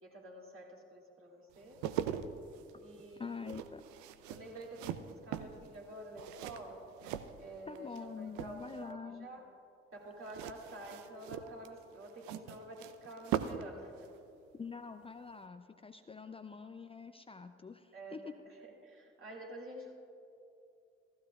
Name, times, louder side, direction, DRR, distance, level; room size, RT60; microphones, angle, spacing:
voice 1, 0.0-1.8 2.8-3.6 4.3-6.8 7.4-9.4 9.9-14.1 17.9-18.3 18.6-19.9, right 1 dB, 45° right, -2 dB, 2.5 m, -49 dB
sound 1, 1.5-8.0 8.3-8.9 10.2-13.7 14.0-14.2, right 10 dB, 70° right, 0.5 m, -41 dB
voice 2, 3.2-3.8 7.6-9.3 14.5-18.3, left 5 dB, 20° left, 8 dB, 0.5 m, -45 dB
15.5 x 14.5 x 2.4 m, 2.6 s
figure-of-eight pair, 40°, 30 cm